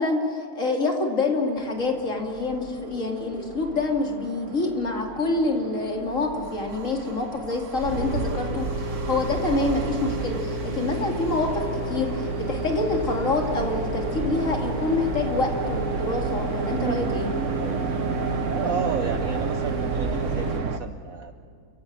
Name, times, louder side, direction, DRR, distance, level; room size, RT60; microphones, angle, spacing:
voice 1, 0.0-17.3, left 3 dB, 35° left, 2 dB, 2.7 m, -26 dB
sound 1, 1.6-20.8, right 6 dB, 55° right, 0.9 m, -33 dB
sound 2, 7.8-20.6, right 1 dB, 90° left, 4.4 m, -31 dB
voice 2, 16.8-17.2 17.5-17.9 18.5-21.3, right 7 dB, 80° right, 9 dB, 0.7 m, -32 dB
28.5 x 15.5 x 7.5 m, 2.4 s
omnidirectional pair, 2.4 m